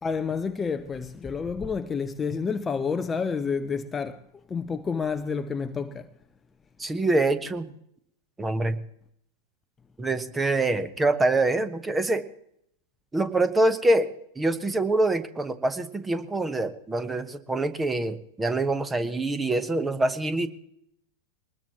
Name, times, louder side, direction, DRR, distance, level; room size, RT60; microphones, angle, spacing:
voice 1, 0.0-4.2 4.5-6.1, left 5 dB, 15° left, 0.7 m, -29 dB
voice 2, 6.8-7.7 8.4-8.8 10.0-12.3 13.1-14.1 14.4-20.5, right 2 dB, 10° right, 1.1 m, -25 dB
23.0 x 20.0 x 3.0 m
figure-of-eight pair, 90°, 0 cm